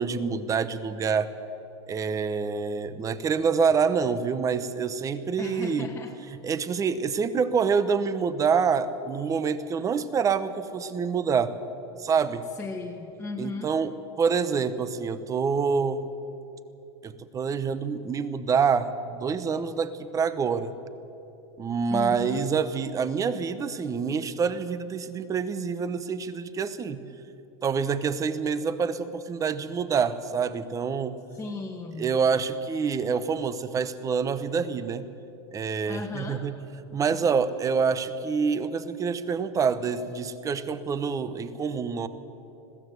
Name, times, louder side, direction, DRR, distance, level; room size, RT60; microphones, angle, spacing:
voice 1, 0.0-1.3 1.9-5.9 6.4-11.6 12.0-12.5 13.4-16.1 17.0-20.7 21.6-27.0 27.6-31.2 32.0-35.1 35.5-36.5 36.9-42.1, right 6 dB, 20° right, 13 dB, 1.0 m, -26 dB
voice 2, 5.4-6.1 6.8-7.0 12.6-13.7 21.9-22.5 31.3-32.2 35.9-36.5 37.1-37.3, left 4 dB, 10° left, -2 dB, 1.5 m, -36 dB
21.0 x 15.5 x 8.1 m, 2.9 s
supercardioid pair, 130°, 15 cm